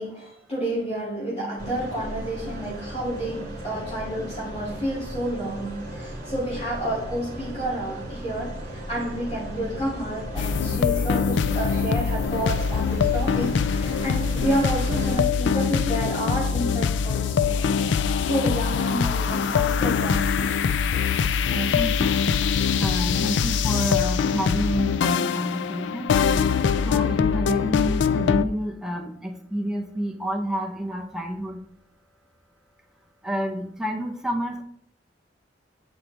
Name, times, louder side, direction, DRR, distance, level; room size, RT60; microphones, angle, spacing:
voice 1, 0.0-8.5 8.9-17.6 18.2-20.5, right 1 dB, 35° left, -9 dB, 2.4 m, -30 dB
sound 1, 1.6-15.2, equal, 50° right, 2.8 m, -36 dB
sound 2, 10.4-28.4, left 6 dB, 70° left, 0.3 m, -23 dB
voice 2, 21.5-22.2 22.8-26.1 26.8-31.6 33.2-34.6, equal, 5° right, 1 dB, 0.8 m, -29 dB
8.2 x 4.5 x 3.3 m, 0.68 s
head